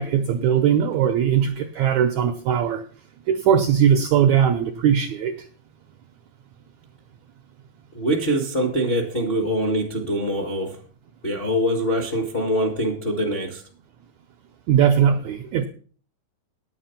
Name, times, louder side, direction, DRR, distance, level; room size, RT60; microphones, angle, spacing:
voice 1, 0.0-2.8 3.3-5.3 14.7-15.7, right 8 dB, 80° right, 6 dB, 1.7 m, -19 dB
voice 2, 7.9-10.8 11.2-13.6, equal, 40° left, 2 dB, 0.8 m, -24 dB
9.8 x 8.7 x 5.7 m, 0.44 s
omnidirectional pair, 4.1 m